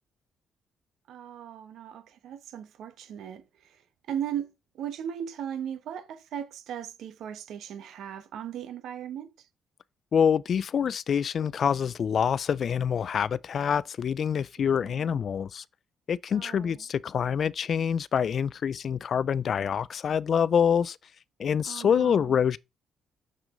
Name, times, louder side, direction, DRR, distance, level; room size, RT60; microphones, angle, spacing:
voice 1, 1.1-3.8 4.1-9.5 14.6-15.2 16.3-16.8 21.7-22.4, right 9 dB, 80° right, 1.0 m, -38 dB
voice 2, 10.1-15.6 16.1-21.0 21.4-22.6, left 7 dB, 55° left, 0.3 m, -26 dB
6.8 x 6.0 x 3.7 m
cardioid pair, 90°, 0 cm